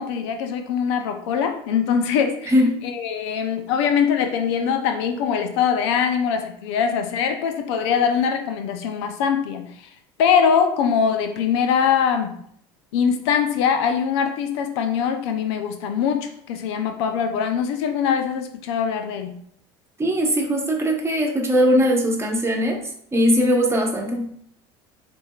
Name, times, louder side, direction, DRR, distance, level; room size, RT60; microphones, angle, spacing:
voice 1, 0.0-2.5 2.8-9.9 10.2-12.4 12.9-19.4, left 7 dB, 75° left, 7 dB, 0.5 m, -22 dB
voice 2, 2.5-2.8 20.0-22.8 23.1-24.3, equal, 20° right, 1 dB, 1.0 m, -20 dB
5.1 x 3.3 x 2.3 m, 0.64 s
hypercardioid pair, 80°, 14 cm